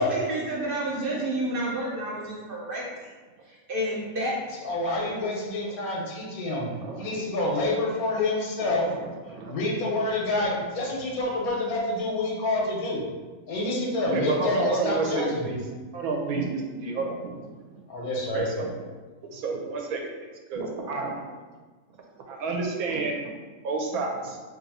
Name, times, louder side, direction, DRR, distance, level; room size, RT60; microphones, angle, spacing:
voice 1, 0.0-3.1 3.5-4.4, right 1 dB, 55° right, -4 dB, 0.7 m, -30 dB
voice 2, 4.6-6.7 7.0-8.9 9.5-13.0 13.5-15.4 17.9-18.4, left 2 dB, 85° left, -2 dB, 1.3 m, -27 dB
voice 3, 6.8-7.2 8.7-9.5 10.4-10.6 14.1-15.6 15.9-17.8 18.3-18.7 19.3-20.0 20.5-21.2 22.3-23.2 23.6-24.4, right 3 dB, 85° right, 1 dB, 1.1 m, -30 dB
3.0 x 2.6 x 4.1 m, 1.3 s
omnidirectional pair, 1.5 m